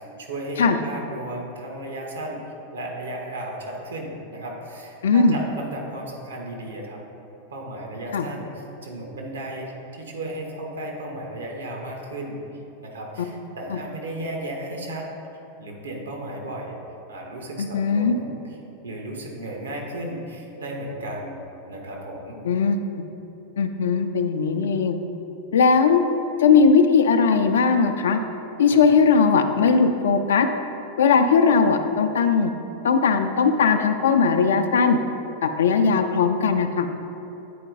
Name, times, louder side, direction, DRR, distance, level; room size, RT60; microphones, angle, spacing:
voice 1, 0.0-7.0 7.5-12.4 12.8-15.1 15.6-16.8 17.1-18.3 18.8-21.4 21.7-22.4, right 1 dB, 70° right, 0 dB, 1.1 m, -34 dB
voice 2, 5.0-5.4 8.1-8.3 13.7-13.8 17.6-18.2 22.4-23.1 23.6-25.0 25.5-26.0 26.4-28.2 28.6-30.5 31.0-32.5 32.8-35.0 35.4-36.9, left 5 dB, 65° left, 7 dB, 0.4 m, -19 dB
8.4 x 4.4 x 3.9 m, 2.9 s
figure-of-eight pair, 90°, 0 cm